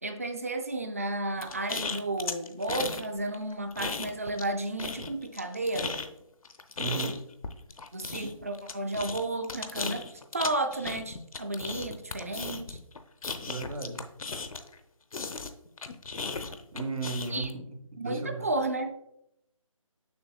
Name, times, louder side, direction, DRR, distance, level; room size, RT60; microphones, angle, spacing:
voice 1, 0.0-6.0 7.9-10.1 10.3-12.8 17.3-17.5 18.0-18.9, right 2 dB, 25° right, 7 dB, 0.4 m, -32 dB
sound 1, 1.4-3.1 3.3-4.5 4.8-14.8 15.1-17.5, left 4 dB, 85° left, 0.7 m, -36 dB
voice 2, 6.8-7.2 13.4-14.0 16.7-17.6 17.9-18.5, right 4 dB, 80° right, 6 dB, 1.3 m, -35 dB
6.8 x 6.0 x 2.3 m, 0.81 s
figure-of-eight pair, 170°, 17 cm